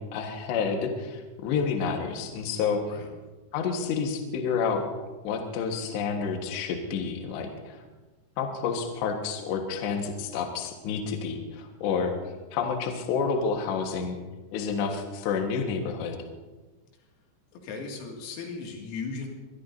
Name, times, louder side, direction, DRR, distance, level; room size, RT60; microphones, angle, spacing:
voice 1, 0.0-2.8 3.5-4.8 5.2-7.9 8.4-12.1 12.5-14.2 14.5-16.2, left 5 dB, 70° left, 2 dB, 3.3 m, -29 dB
voice 2, 17.6-19.3, left 4 dB, 85° left, 0 dB, 5.1 m, -36 dB
24.5 x 21.0 x 2.7 m, 1.2 s
omnidirectional pair, 5.9 m